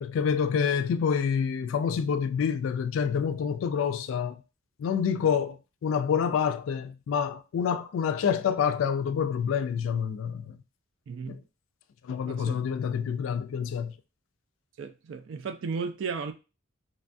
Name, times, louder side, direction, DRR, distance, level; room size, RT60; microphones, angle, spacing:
voice 1, 0.0-4.4 4.8-10.6 11.3-11.4 12.0-14.0, left 7 dB, 75° left, 0.3 m, -27 dB
voice 2, 11.1-11.4 12.3-12.6 14.8-16.3, right 5 dB, 65° right, 0.4 m, -34 dB
3.2 x 2.2 x 2.5 m
head